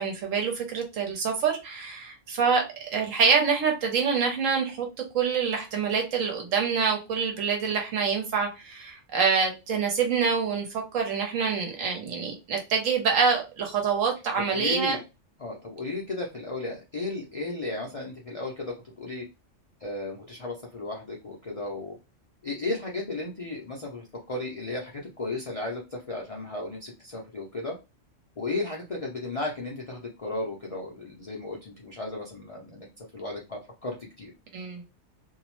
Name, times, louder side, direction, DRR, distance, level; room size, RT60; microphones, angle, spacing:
voice 1, 0.0-2.6 2.9-4.9 5.1-15.0 34.5-34.8, right 6 dB, 90° right, 1.2 m, -26 dB
voice 2, 14.4-15.0 15.4-19.2 19.8-21.9 22.4-27.8 28.4-34.3, left 2 dB, 55° left, 0.4 m, -34 dB
2.6 x 2.0 x 2.9 m
omnidirectional pair, 1.3 m